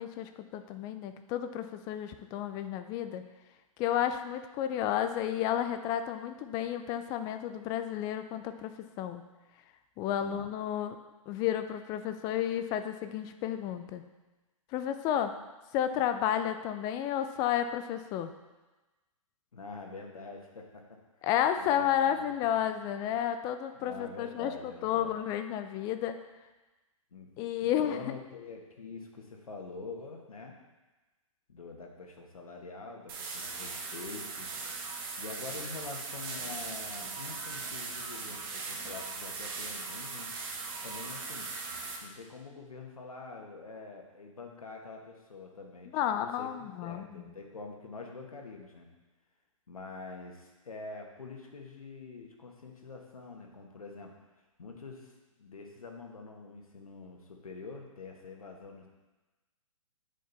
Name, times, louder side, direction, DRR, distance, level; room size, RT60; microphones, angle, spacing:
voice 1, 0.0-3.2 3.8-9.2 10.0-11.0 11.3-14.0 14.7-15.3 15.7-18.3 21.2-24.5 24.8-26.2 27.4-28.0 45.9-47.2, left 10 dB, 20° left, 9 dB, 0.4 m, -32 dB
voice 2, 19.5-21.3 21.6-22.2 23.7-25.1 27.1-27.3 27.6-30.5 31.5-34.5 35.2-40.3 40.8-41.5 41.8-48.9 49.7-54.1 54.6-58.9, left 3 dB, 85° left, 2 dB, 1.5 m, -45 dB
sound 1, 33.1-42.0, right 4 dB, 40° right, 1.4 m, -39 dB
8.9 x 5.2 x 4.0 m, 1.2 s
hypercardioid pair, 135°, 18 cm